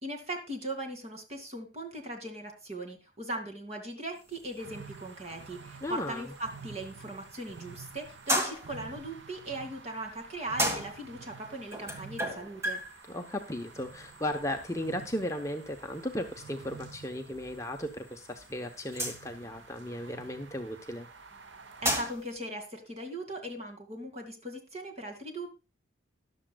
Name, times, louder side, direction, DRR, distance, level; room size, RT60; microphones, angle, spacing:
voice 1, 0.0-12.8 21.8-25.5, right 1 dB, 35° right, 4 dB, 2.3 m, -39 dB
sound 1, 4.2-22.4, equal, 15° right, 1.7 m, -38 dB
sound 2, 4.6-22.0, right 4 dB, 65° right, 0.8 m, -50 dB
voice 2, 5.8-6.3 13.1-21.1, left 1 dB, 15° left, 3 dB, 0.8 m, -36 dB
14.0 x 11.0 x 2.3 m, 0.29 s
head